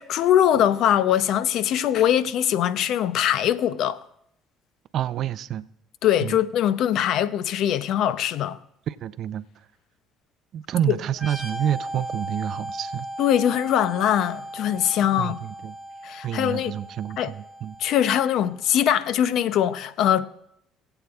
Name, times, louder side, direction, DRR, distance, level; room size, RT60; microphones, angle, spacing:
voice 1, 0.0-4.0 6.0-8.6 10.9-11.0 13.2-15.4 16.0-16.7 17.2-17.3 17.8-20.3, left 10 dB, 65° left, 0.5 m, -22 dB
voice 2, 4.9-5.6 6.2-6.4 8.9-9.4 10.5-13.1 15.2-15.8 16.2-17.7, right 10 dB, 60° right, 0.4 m, -28 dB
sound 1, 11.1-18.6, right 1 dB, 20° left, 4.2 m, -37 dB
21.5 x 8.0 x 2.4 m
supercardioid pair, 70°, 0 cm